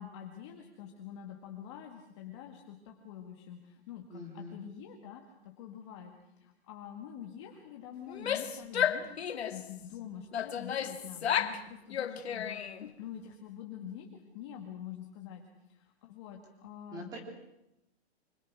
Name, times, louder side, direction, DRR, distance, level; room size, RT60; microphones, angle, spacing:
voice 1, 0.0-9.2 9.5-15.4 15.7-17.2, left 9 dB, 25° left, 1 dB, 2.0 m, -46 dB
voice 2, 4.1-4.6 16.9-17.2, equal, 10° right, 2 dB, 3.2 m, -43 dB
Female speech woman speaking / Yell, 8.1-9.7 10.3-11.6 11.9-12.9, left 9 dB, 70° left, 2.0 m, -33 dB
26.5 x 25.5 x 6.2 m, 0.89 s
hypercardioid pair, 175°, 33 cm